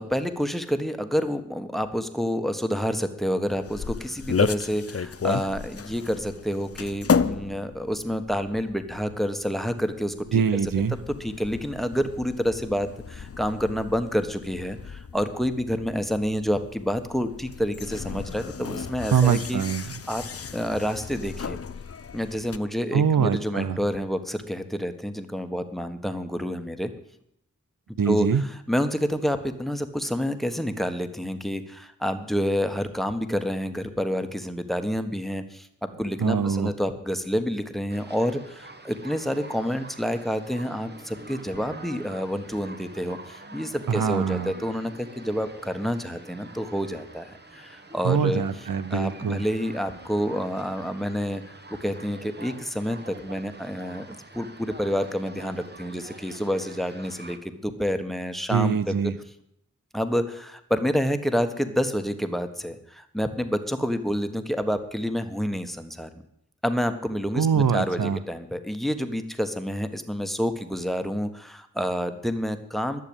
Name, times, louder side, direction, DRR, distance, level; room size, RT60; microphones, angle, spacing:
voice 1, 0.0-10.4 11.2-20.2 20.5-21.6 22.1-26.9 28.1-28.3 28.7-48.4 48.9-58.9 59.9-66.1 66.6-73.0, equal, ahead, 9 dB, 1.4 m, -28 dB
sound 1, 3.5-22.6, left 6 dB, 45° left, 0.6 m, -33 dB
voice 2, 10.3-11.0 19.1-19.9 22.9-23.8 28.0-28.4 36.2-36.7 43.9-44.5 48.0-49.5 58.5-59.2 67.4-68.2, right 7 dB, 90° right, 14 dB, 0.7 m, -23 dB
sound 2, 37.9-57.4, right 2 dB, 30° right, 1.3 m, -45 dB
12.0 x 6.9 x 8.9 m, 0.76 s
cardioid pair, 40°, 33 cm